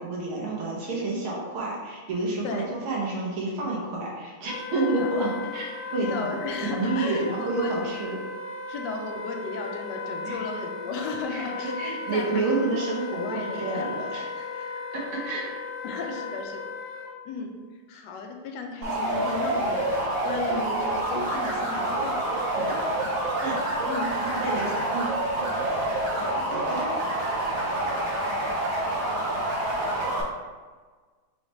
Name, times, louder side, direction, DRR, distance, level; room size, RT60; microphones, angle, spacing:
voice 1, 0.0-6.3 6.6-8.2 10.3-10.4 11.3-14.6 14.9-15.5 22.6-22.8 23.4-23.6 24.2-25.1 26.7-26.9, right 2 dB, 80° right, -3 dB, 1.9 m, -29 dB
Wind instrument woodwind instrument, 4.4-17.1, left 4 dB, 55° left, 0.9 m, -36 dB
voice 2, 6.0-7.7 8.7-11.8 12.1-12.4 13.2-13.9 15.8-16.6 17.3-17.5 17.9-19.9 20.2-22.2 23.9-24.1 24.5-24.8 25.5-25.6 26.0-26.6, left 4 dB, 75° left, 2 dB, 1.1 m, -35 dB
sound 1, 18.8-30.2, right 1 dB, 50° right, 0.7 m, -27 dB
4.9 x 3.1 x 3.2 m, 1.4 s
omnidirectional pair, 2.3 m